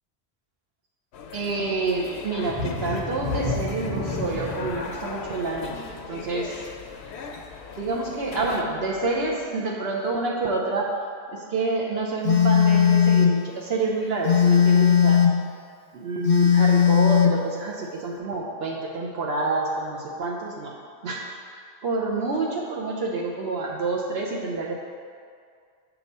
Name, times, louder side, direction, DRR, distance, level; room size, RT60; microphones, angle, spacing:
sound 1, 1.1-8.6, left 5 dB, 85° left, 0.8 m, -38 dB
voice 1, 1.3-6.7 7.8-10.9 11.3-15.2 15.9-20.7 21.0-21.3 21.8-24.7, right 3 dB, 75° right, -2 dB, 0.9 m, -28 dB
sound 2, 2.4-7.9 8.3-8.5 9.0-9.1, left 2 dB, 55° right, 1.2 m, -32 dB
Telephone, 12.2-13.4 14.2-15.4 16.2-17.4, left 7 dB, 55° left, 0.6 m, -18 dB
6.9 x 3.0 x 5.3 m, 2.2 s
omnidirectional pair, 1.1 m